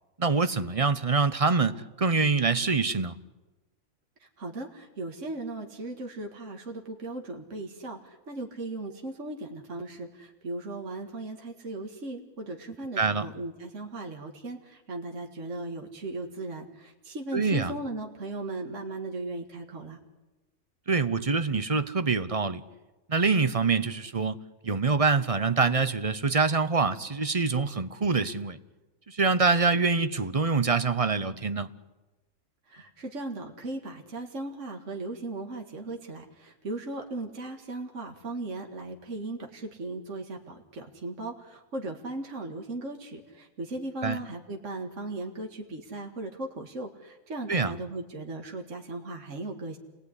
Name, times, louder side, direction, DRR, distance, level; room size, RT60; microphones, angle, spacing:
voice 1, 0.2-3.1 13.0-13.3 17.3-17.7 20.9-22.6 23.1-28.6 29.1-31.7 44.0-44.2 47.5-47.7, right 4 dB, 30° right, 12 dB, 0.8 m, -25 dB
voice 2, 4.4-20.0 32.7-49.8, right 2 dB, 60° right, 2 dB, 2.3 m, -37 dB
28.5 x 19.0 x 9.9 m, 1.1 s
omnidirectional pair, 1.5 m